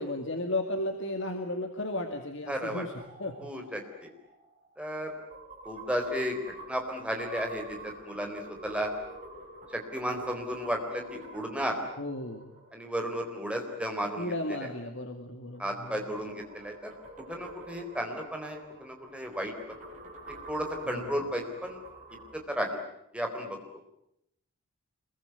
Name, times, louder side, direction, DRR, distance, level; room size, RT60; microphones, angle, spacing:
voice 1, 0.0-2.9 3.2-3.3 12.0-12.6 14.2-16.0 20.9-21.2, left 1 dB, 55° left, 5 dB, 2.2 m, -34 dB
voice 2, 2.5-2.8 3.4-4.1 4.8-5.1 5.6-8.9 9.7-11.8 12.7-14.7 15.6-16.9 17.3-19.5 20.5-21.8 22.3-22.8 23.1-23.6, equal, 5° right, 3 dB, 4.0 m, -34 dB
sound 1, 3.0-13.6 15.5-22.4, right 2 dB, 35° right, 7.0 m, -48 dB
26.5 x 22.5 x 9.4 m, 0.80 s
head